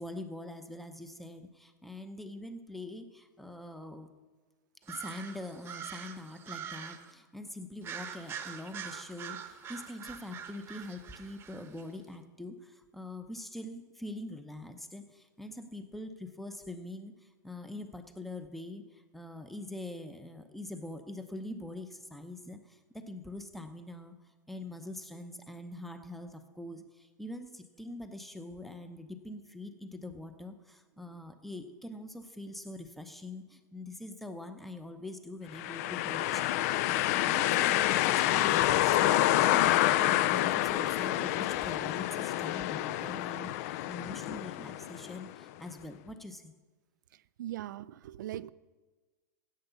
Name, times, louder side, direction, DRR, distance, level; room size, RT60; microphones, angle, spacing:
voice 1, 0.0-4.2 4.9-24.2 24.5-46.5, left 1 dB, ahead, 9 dB, 0.7 m, -44 dB
sound 1, 4.8-7.1 7.8-11.8, right 8 dB, 25° right, 0.9 m, -44 dB
sound 2, 35.5-45.3, left 14 dB, 55° left, 0.4 m, -28 dB
voice 2, 47.1-48.5, right 13 dB, 80° right, 18 dB, 0.4 m, -40 dB
10.5 x 8.0 x 6.9 m, 1.3 s
supercardioid pair, 135°, 10 cm